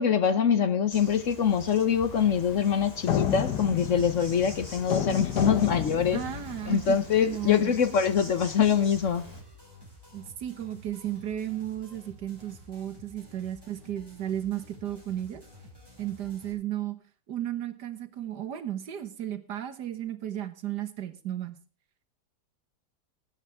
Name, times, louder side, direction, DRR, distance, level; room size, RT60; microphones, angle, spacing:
voice 1, 0.0-6.2 6.7-9.3, left 7 dB, 55° left, 1.2 m, -24 dB
Insect, 0.9-9.4, left 1 dB, 25° left, 3.6 m, -45 dB
sound 1, 2.1-6.9, left 10 dB, 90° left, 1.5 m, -31 dB
sound 2, 2.2-16.5, left 2 dB, 15° right, 5.5 m, -51 dB
voice 2, 6.1-7.0 7.3-7.8 10.1-15.4 16.0-17.0 17.3-21.6, right 11 dB, 85° right, 1.9 m, -34 dB
19.5 x 9.1 x 3.5 m
omnidirectional pair, 1.7 m